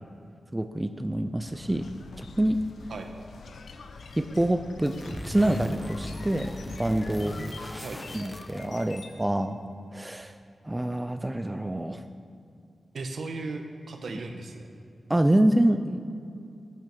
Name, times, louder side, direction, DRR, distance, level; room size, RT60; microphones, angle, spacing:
voice 1, 0.5-1.9 2.2-2.6 4.2-5.0 5.2-7.4 7.7-7.8 8.1-9.6 9.9-10.3 10.6-12.0 15.1-16.0, right 1 dB, 10° right, 8 dB, 0.5 m, -26 dB
sound 1, 1.4-6.9, left 4 dB, 90° left, 1.0 m, -46 dB
sound 2, 3.7-9.2, left 3 dB, 75° left, 1.2 m, -47 dB
sound 3, 4.8-9.1, left 1 dB, 10° left, 0.9 m, -38 dB
voice 2, 12.9-14.7, right 3 dB, 65° right, 5 dB, 1.4 m, -36 dB
15.5 x 9.6 x 6.8 m, 2.5 s
wide cardioid pair, 155°, 0 cm